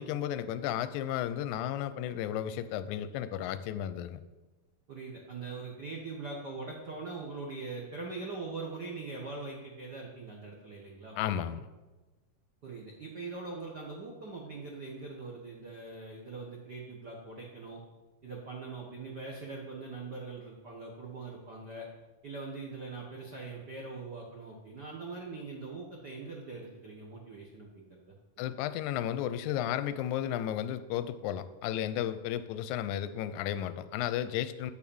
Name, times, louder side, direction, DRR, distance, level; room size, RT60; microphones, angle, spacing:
voice 1, 0.0-4.2 11.2-11.6 28.4-34.7, left 11 dB, 80° left, 12 dB, 1.8 m, -33 dB
voice 2, 4.9-11.2 12.6-17.8 18.2-21.9 22.2-28.5, right 3 dB, 60° right, -2 dB, 1.0 m, -42 dB
8.0 x 7.2 x 7.0 m, 1.2 s
omnidirectional pair, 3.8 m